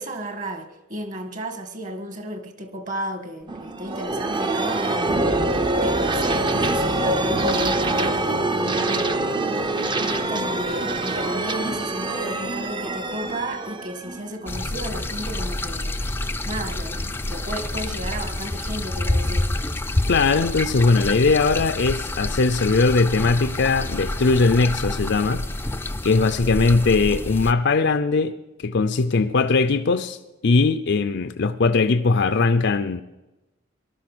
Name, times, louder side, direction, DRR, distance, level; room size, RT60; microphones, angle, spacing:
voice 1, 0.0-5.4 5.8-9.2 10.0-15.9 16.4-19.5, right 1 dB, 40° right, 1.7 m, -33 dB
sound 1, 3.5-15.0, right 2 dB, 25° right, 0.7 m, -24 dB
sound 2, 14.5-27.5, left 2 dB, 10° left, 0.5 m, -28 dB
voice 2, 20.1-25.4 26.0-28.3 28.6-30.2 30.4-33.0, left 3 dB, 60° left, 0.5 m, -20 dB
19.0 x 12.5 x 6.1 m
head